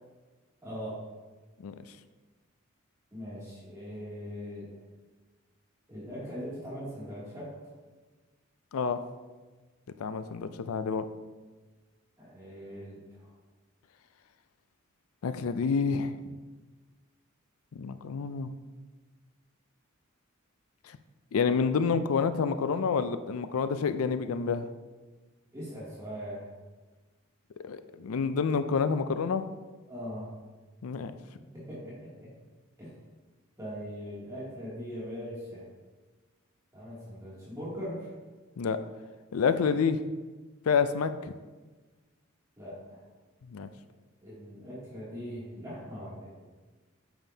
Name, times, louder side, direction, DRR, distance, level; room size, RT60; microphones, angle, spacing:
voice 1, 0.6-1.0 3.1-4.7 5.9-7.7 12.2-13.3 25.5-26.5 29.9-30.4 31.5-32.3 32.8-32.9 33.6-35.7 36.7-38.1 42.6-43.0 44.2-46.3, equal, 15° right, -9 dB, 2.5 m, -40 dB
voice 2, 10.0-11.0 15.2-16.4 17.8-18.5 21.3-24.7 27.6-29.5 30.8-31.1 38.6-38.8 39.3-40.0 40.7-41.3 43.5-43.7, left 5 dB, 85° left, 11 dB, 0.4 m, -28 dB
9.0 x 7.1 x 2.8 m, 1.3 s
head